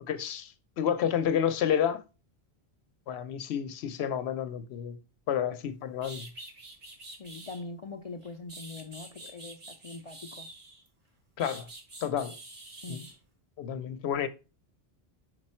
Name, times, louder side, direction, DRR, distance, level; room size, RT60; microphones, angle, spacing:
voice 1, 0.1-2.0 3.1-5.0 5.3-6.3 11.4-11.7 12.0-12.4 12.9-13.0 13.6-14.3, left 9 dB, 90° left, 0.9 m, -30 dB
sound 1, 5.6-5.7 6.0-7.6 8.2-10.9 11.4-13.2, right 2 dB, 50° right, 1.8 m, -46 dB
voice 2, 7.2-10.5 12.8-13.1, left 3 dB, 45° left, 0.5 m, -42 dB
5.2 x 4.9 x 4.3 m
omnidirectional pair, 1.0 m